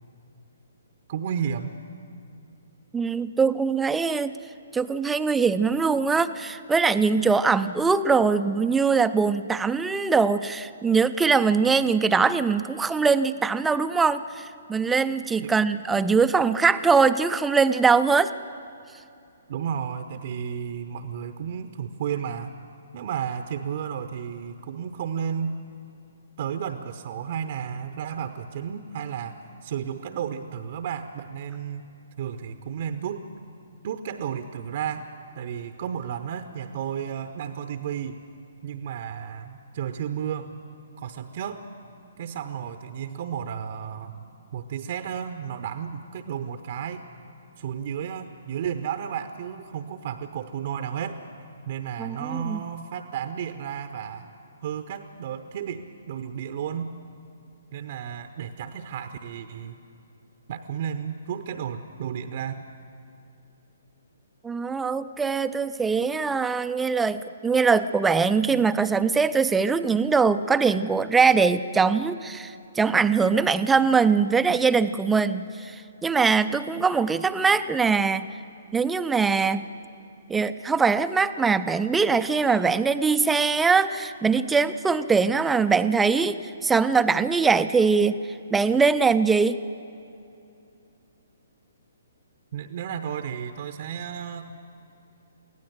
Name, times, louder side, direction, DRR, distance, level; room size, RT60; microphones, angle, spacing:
voice 1, 1.1-1.8 15.4-15.5 19.5-22.6 22.9-25.6 26.4-31.9 32.2-33.3 33.8-35.1 35.3-38.2 38.6-40.5 41.0-41.6 42.2-47.0 47.6-51.2 51.7-54.3 54.6-56.9 57.7-59.8 60.5-62.7 92.5-94.5, right 8 dB, 45° right, 9 dB, 0.8 m, -33 dB
voice 2, 2.9-4.4 4.7-18.3 52.0-52.6 64.4-78.3 78.7-79.7 80.3-88.2 88.5-89.6, right 5 dB, 10° right, 12 dB, 0.5 m, -22 dB
23.5 x 16.5 x 7.9 m, 2.7 s
figure-of-eight pair, 125°, 0 cm